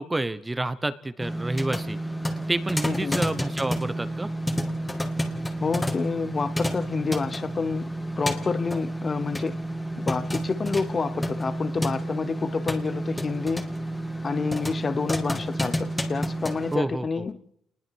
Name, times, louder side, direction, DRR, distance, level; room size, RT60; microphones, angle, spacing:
voice 1, 0.0-2.0 2.5-4.3 16.7-17.2, right 2 dB, 15° right, 1.0 m, -29 dB
sound 1, 1.2-16.8, equal, 10° left, 2.2 m, -30 dB
voice 2, 2.8-3.2 5.6-7.9 8.2-9.6 10.0-13.7 14.2-17.4, left 4 dB, 35° left, 0.8 m, -28 dB
27.5 x 20.5 x 4.7 m
cardioid pair, 90°, 0 cm